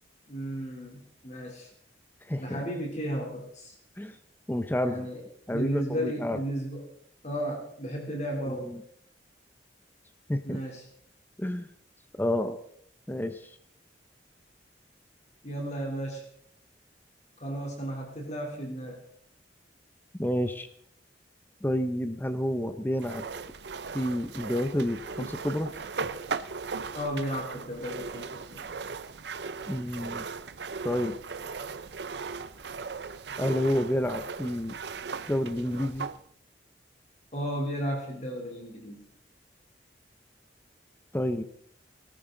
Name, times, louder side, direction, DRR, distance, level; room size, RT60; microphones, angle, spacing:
voice 1, 0.3-1.7 2.4-3.7 4.8-5.2 5.5-6.8 7.2-8.7 10.4-10.8 15.4-16.2 17.4-19.0 26.9-28.7 37.3-39.0, equal, 40° left, 0 dB, 3.3 m, -34 dB
voice 2, 2.2-2.6 4.0-4.2 4.5-5.1 5.5-6.4 8.5-8.8 10.3-10.6 11.4-11.7 12.2-12.6 13.1-13.6 20.1-20.7 21.6-23.2 23.9-25.7 29.7-30.3 30.8-31.2 33.4-34.8 35.3-36.1 41.1-41.4, left 1 dB, 10° left, 9 dB, 0.7 m, -29 dB
sound 1, 23.0-36.2, right 5 dB, 65° right, 0.6 m, -38 dB
19.0 x 13.5 x 3.9 m, 0.67 s
head